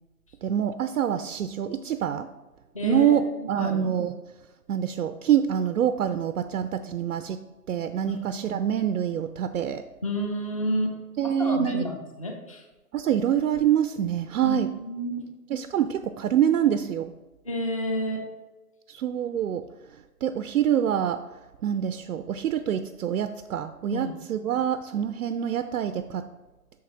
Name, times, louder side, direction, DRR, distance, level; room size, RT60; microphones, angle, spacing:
voice 1, 0.4-2.3 2.8-4.1 4.7-7.4 7.7-9.8 11.2-11.8 12.9-14.7 15.5-17.1 18.9-19.6 20.2-21.2 21.6-26.3, right 9 dB, 70° right, 10 dB, 0.5 m, -26 dB
voice 2, 2.7-3.8 10.0-11.0 11.2-12.6 14.4-15.3 17.4-18.2 23.9-24.2, equal, 25° left, 2 dB, 0.6 m, -30 dB
8.5 x 6.5 x 2.9 m, 1.2 s
hypercardioid pair, 160°, 46 cm